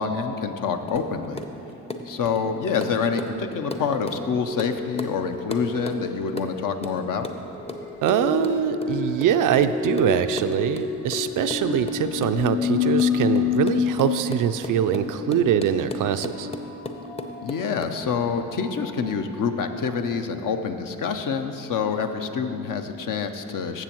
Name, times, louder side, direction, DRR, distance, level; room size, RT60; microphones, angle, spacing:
voice 1, 0.0-1.4 2.1-7.3 17.4-23.8, left 5 dB, 50° left, 7 dB, 0.8 m, -27 dB
sound 1, 0.9-4.2 4.5-4.7 5.0-7.4 7.7-17.9, left 3 dB, 15° left, 0.7 m, -35 dB
sound 2, 2.2-2.3 3.4-19.4 19.8-19.9 20.1-20.2, left 6 dB, 70° left, 2.2 m, -30 dB
voice 2, 8.0-16.5, right 9 dB, 50° right, 10 dB, 0.4 m, -23 dB
14.0 x 7.2 x 3.0 m, 2.9 s
hypercardioid pair, 55°, 42 cm